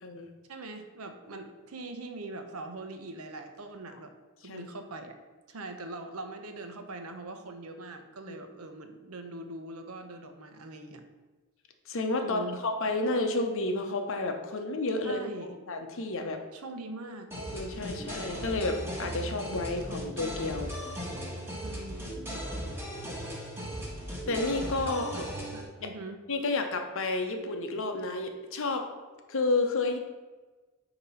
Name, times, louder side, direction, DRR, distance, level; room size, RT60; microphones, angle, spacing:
voice 1, 0.5-4.1 4.4-5.2 5.5-11.0 12.2-12.6 15.0-15.6 16.5-17.3 21.6-22.1 24.8-26.2, right 2 dB, 85° right, 6 dB, 0.8 m, -42 dB
voice 2, 11.9-16.4 17.5-20.7 24.3-25.0 25.8-25.9 26.3-28.9 29.3-30.0, left 2 dB, 65° left, 4 dB, 0.9 m, -31 dB
sound 1, 17.3-25.6, equal, 10° right, 1.5 m, -37 dB
8.8 x 3.0 x 5.6 m, 1.3 s
head